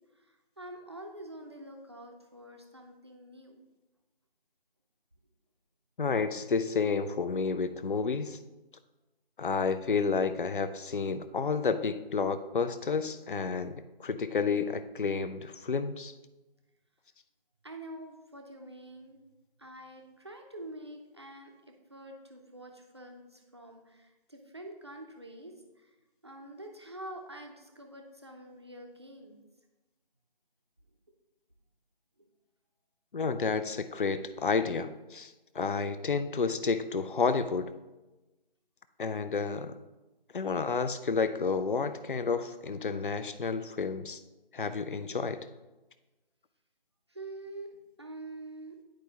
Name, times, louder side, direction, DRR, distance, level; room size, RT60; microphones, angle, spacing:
voice 1, 0.1-3.6 17.6-19.2 19.6-25.9 26.2-29.4 47.1-48.8, right 1 dB, 30° right, 2 dB, 0.6 m, -46 dB
voice 2, 6.0-8.4 9.4-16.1 33.1-37.7 39.0-39.8 40.3-44.2 44.5-45.4, left 5 dB, 60° left, 11 dB, 0.5 m, -30 dB
10.5 x 4.7 x 2.9 m, 1.1 s
figure-of-eight pair, 160°, 30 cm